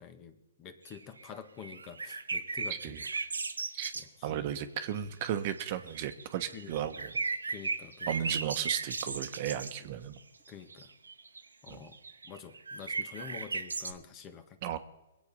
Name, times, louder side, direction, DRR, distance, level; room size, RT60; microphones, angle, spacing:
voice 1, 0.0-3.0 3.9-4.6 6.5-6.7 7.5-8.2 10.5-10.9 11.6-12.0 12.2-14.6, left 7 dB, 30° left, 10 dB, 1.6 m, -48 dB
sound 1, 0.9-1.3 1.6-4.0 4.9-5.0 5.3-9.7 10.5-13.9, right 4 dB, 85° right, 1.1 m, -36 dB
voice 2, 2.7-3.0 3.7-3.9 4.2-7.2 8.1-10.2 11.7-11.9 14.6-14.8, right 10 dB, 45° right, 9 dB, 1.2 m, -35 dB
23.0 x 8.6 x 5.5 m, 1.0 s
hypercardioid pair, 125°, 0 cm